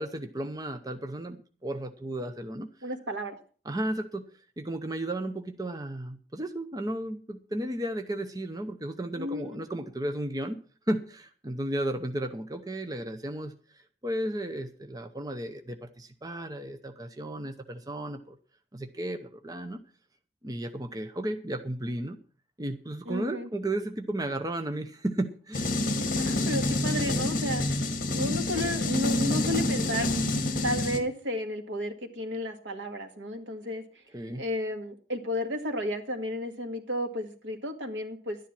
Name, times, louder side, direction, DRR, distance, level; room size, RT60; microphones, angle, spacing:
voice 1, 0.0-2.7 3.6-4.2 4.6-10.6 10.9-13.5 14.0-18.4 18.7-19.8 20.4-22.2 22.6-25.7 34.1-34.4, right 1 dB, 20° right, 7 dB, 0.8 m, -34 dB
voice 2, 2.8-3.4 9.2-9.6 23.1-23.5 25.8-27.6 28.1-30.1 30.6-33.8 34.4-38.5, left 1 dB, 80° right, 6 dB, 2.0 m, -33 dB
sound 1, 25.5-31.0, left 2 dB, 45° left, 1.7 m, -27 dB
11.5 x 10.0 x 6.0 m, 0.40 s
head